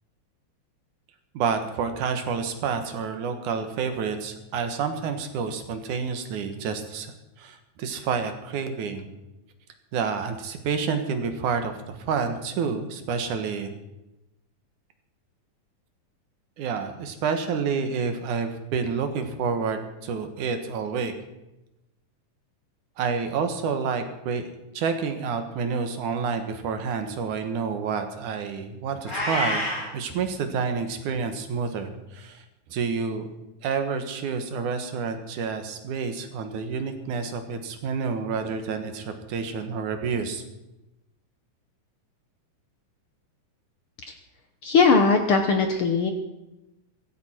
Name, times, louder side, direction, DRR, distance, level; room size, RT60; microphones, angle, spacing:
voice 1, 1.3-9.1 9.9-13.7 16.6-21.1 23.0-24.5 24.7-29.6 29.9-32.4 32.7-33.3 33.6-40.4, right 5 dB, 75° right, 7 dB, 2.8 m, -29 dB
Meow, 29.0-29.9, left 1 dB, 25° left, 5.7 m, -27 dB
voice 2, 44.6-46.1, left 4 dB, 65° left, 5 dB, 1.5 m, -19 dB
17.0 x 15.0 x 4.4 m, 0.96 s
omnidirectional pair, 3.6 m